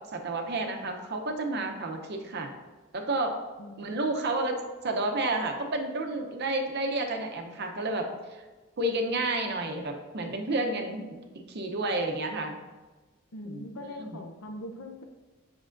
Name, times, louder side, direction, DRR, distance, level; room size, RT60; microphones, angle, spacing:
voice 1, 0.0-2.5 2.9-3.4 3.8-8.4 8.8-11.1 11.5-12.5 13.4-14.2, right 2 dB, 50° right, 3 dB, 0.7 m, -31 dB
voice 2, 3.6-4.1 13.3-15.0, left 1 dB, 85° left, 4 dB, 0.7 m, -41 dB
7.5 x 6.1 x 2.5 m, 1.2 s
head